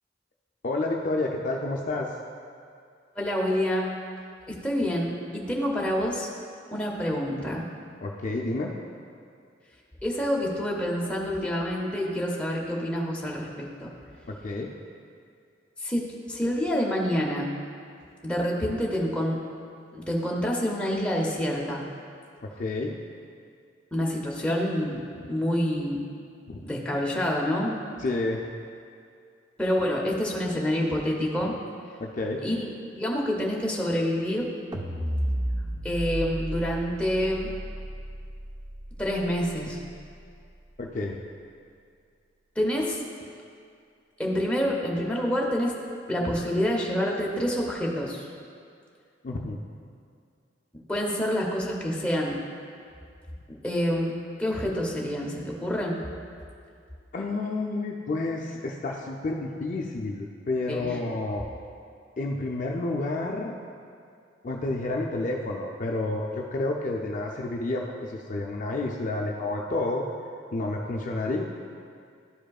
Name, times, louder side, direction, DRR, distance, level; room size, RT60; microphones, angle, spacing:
voice 1, 0.6-2.1 8.0-8.7 14.3-14.7 22.4-23.0 26.5-26.6 28.0-28.4 32.0-32.4 40.8-41.2 49.2-49.6 57.1-61.4 62.2-63.6 64.4-70.1 70.5-71.4, left 2 dB, 40° left, 0 dB, 0.4 m, -30 dB
voice 2, 3.1-4.0 4.5-6.3 6.7-7.6 10.0-13.9 15.8-17.5 18.2-19.4 19.9-21.8 23.9-25.0 25.3-26.0 26.6-27.8 29.6-31.5 32.4-32.7 33.0-34.5 35.8-37.5 39.0-39.8 42.6-43.0 44.2-45.7 46.1-48.3 50.9-52.4 53.6-54.1 54.4-56.0 60.7-61.0, equal, 5° left, -2 dB, 0.7 m, -27 dB
sound 1, 34.7-41.0, equal, 20° right, 0.4 m, -34 dB
11.5 x 5.1 x 2.3 m, 2.3 s
head